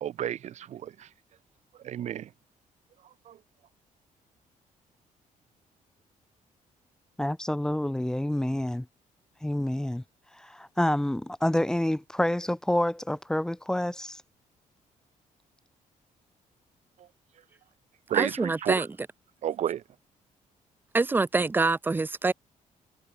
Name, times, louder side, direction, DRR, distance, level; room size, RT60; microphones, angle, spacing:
voice 1, 0.0-1.1 1.8-2.3 3.3-3.4 18.1-18.8 19.4-19.8, right 11 dB, 55° right, 1.5 m, -31 dB
voice 2, 7.2-8.9 9.4-10.0 10.3-14.2, left 1 dB, 5° left, 1.6 m, -28 dB
voice 3, 18.1-18.9 20.9-22.3, right 3 dB, 15° right, 1.5 m, -25 dB
cardioid pair, 170°, 14 cm